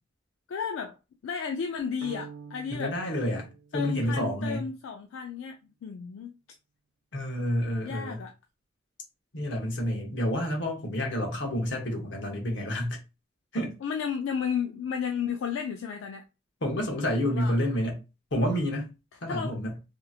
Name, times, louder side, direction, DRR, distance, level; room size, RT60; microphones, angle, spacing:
voice 1, 0.5-1.0 1.2-3.0 3.7-6.3 7.8-8.3 13.8-16.2 17.2-17.6 19.3-19.5, left 6 dB, 90° left, 0.3 m, -33 dB
sound 1, 2.0-4.3, right 5 dB, 75° right, 0.3 m, -47 dB
voice 2, 2.7-3.5 3.7-4.6 7.1-8.2 9.3-13.0 13.5-13.7 16.6-18.0 18.3-18.9 19.2-19.7, equal, 70° left, 0.9 m, -29 dB
2.8 x 2.5 x 2.4 m
head